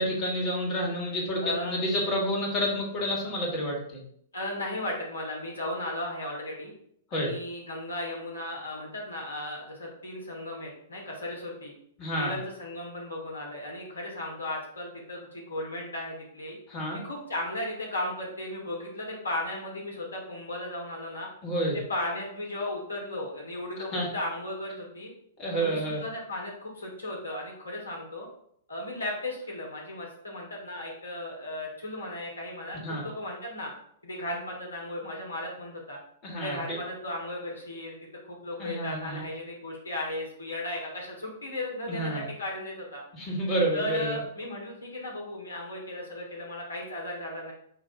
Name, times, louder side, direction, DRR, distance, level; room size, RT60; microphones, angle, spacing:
voice 1, 0.0-4.0 7.1-7.3 12.0-12.4 16.7-17.0 21.4-21.8 23.9-24.1 25.4-26.0 32.8-33.0 36.2-36.8 38.6-39.2 41.9-42.3 43.1-44.2, equal, 30° left, -3 dB, 1.5 m, -29 dB
voice 2, 1.4-1.8 4.3-6.7 7.1-11.7 12.2-16.6 17.0-21.3 21.9-25.1 25.6-28.3 28.7-33.7 34.0-36.0 36.4-37.9 38.3-43.0 43.7-47.5, left 1 dB, 80° left, -1 dB, 1.3 m, -36 dB
5.3 x 2.5 x 3.8 m, 0.68 s
figure-of-eight pair, 105°, 0 cm